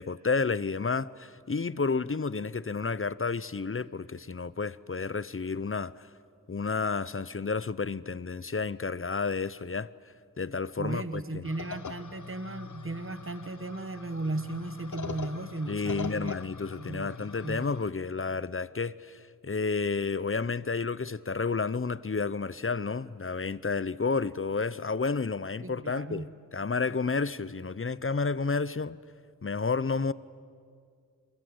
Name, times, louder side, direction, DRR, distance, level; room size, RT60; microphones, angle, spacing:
voice 1, 0.0-6.1 6.5-9.9 10.4-11.4 15.7-29.0 29.4-30.1, left 4 dB, 35° left, 0.7 m, -31 dB
voice 2, 10.8-16.4 16.8-17.7 25.6-26.3, right 2 dB, 35° right, 1.5 m, -36 dB
sound 1, 11.4-17.9, left 6 dB, 55° left, 1.0 m, -42 dB
29.0 x 23.0 x 7.9 m
wide cardioid pair, 40°, 35 cm